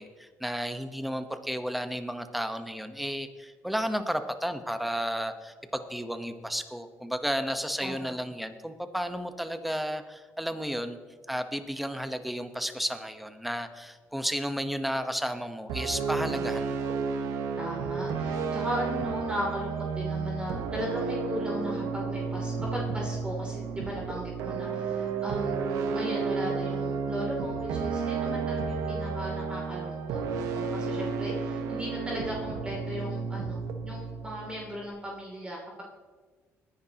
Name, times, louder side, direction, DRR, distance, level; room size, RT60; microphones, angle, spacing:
voice 1, 0.0-11.0 11.3-16.9, equal, ahead, 8 dB, 1.0 m, -33 dB
voice 2, 7.8-8.2 16.2-16.5 17.6-25.5 25.9-30.2 30.5-35.8, equal, 20° right, -3 dB, 2.9 m, -37 dB
sound 1, 15.7-34.9, right 5 dB, 90° right, 1.1 m, -32 dB
20.5 x 10.5 x 2.9 m, 1.4 s
cardioid pair, 95°, 6 cm